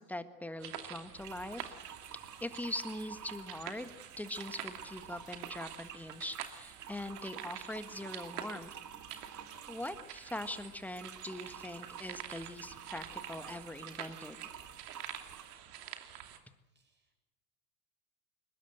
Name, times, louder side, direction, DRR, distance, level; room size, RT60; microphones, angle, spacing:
voice 1, 0.0-1.7 2.1-3.9 4.2-8.7 9.7-14.5, left 1 dB, 5° left, 11 dB, 1.6 m, -42 dB
sound 1, 0.6-16.4, right 10 dB, 75° right, 2.8 m, -48 dB
sound 2, 1.2-15.6, right 8 dB, 40° right, 2.6 m, -50 dB
voice 2, 16.6-17.2, right 4 dB, 20° right, 3 dB, 7.6 m, -77 dB
22.5 x 20.5 x 7.9 m, 0.92 s
hypercardioid pair, 95°, 47 cm